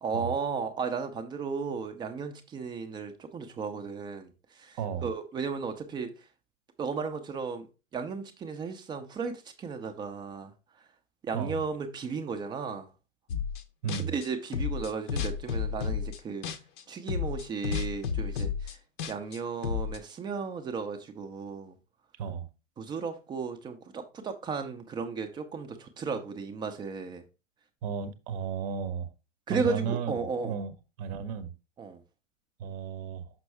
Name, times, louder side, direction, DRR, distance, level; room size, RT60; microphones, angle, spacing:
voice 1, 0.0-6.1 6.8-7.7 7.9-10.5 11.2-12.9 14.0-16.5 16.9-18.8 19.1-21.8 22.8-27.2 29.5-30.6 31.8-32.0, right 5 dB, 10° right, 0.7 m, -34 dB
voice 2, 4.8-5.1 11.3-11.6 13.8-14.2 22.2-22.5 27.8-29.1 29.5-30.7 31.0-31.5 32.6-33.3, right 7 dB, 30° right, 1.0 m, -34 dB
sound 1, 13.3-13.6 13.9-16.8 17.1-20.0, left 6 dB, 40° left, 0.9 m, -32 dB
6.1 x 5.9 x 3.4 m
figure-of-eight pair, 115°, 39 cm